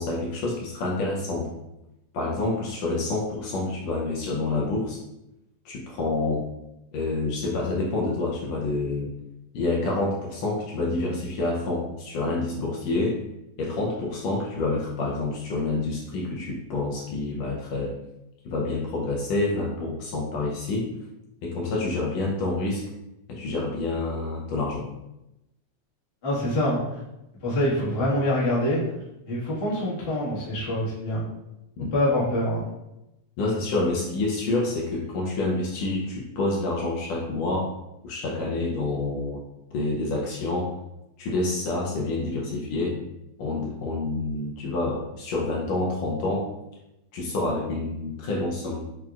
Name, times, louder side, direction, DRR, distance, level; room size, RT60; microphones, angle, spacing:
voice 1, 0.0-1.5 2.1-5.0 5.6-6.5 6.9-9.1 9.5-13.2 13.6-18.0 18.4-20.9 21.4-22.9 23.3-24.9 31.8-31.9 33.4-37.7 38.0-39.4 39.7-40.7 41.2-43.0 43.4-46.5 47.1-48.9, left 2 dB, 80° left, -3 dB, 1.6 m, -28 dB
voice 2, 26.2-27.0 27.4-28.8 29.3-31.2 31.9-32.6, left 1 dB, 50° left, -8 dB, 0.6 m, -25 dB
5.9 x 2.3 x 2.3 m, 0.92 s
omnidirectional pair, 3.3 m